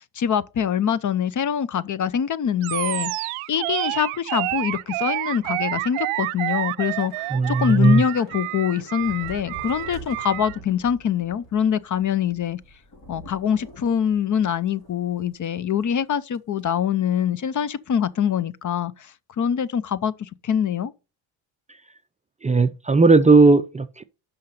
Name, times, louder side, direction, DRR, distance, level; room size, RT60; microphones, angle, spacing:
voice 1, 0.2-3.1 3.5-12.6 13.1-19.1 19.4-20.9, left 8 dB, 40° left, 0.6 m, -24 dB
Animal, 2.6-10.6, right 21 dB, 80° right, 0.6 m, -29 dB
Thunder / Rain, 6.9-15.5 15.8-16.0 16.3-16.6, right 1 dB, 60° left, 3.8 m, -46 dB
voice 2, 7.3-8.0 22.4-24.0, right 3 dB, 15° right, 0.4 m, -16 dB
5.8 x 5.5 x 6.5 m
supercardioid pair, 80°, 49 cm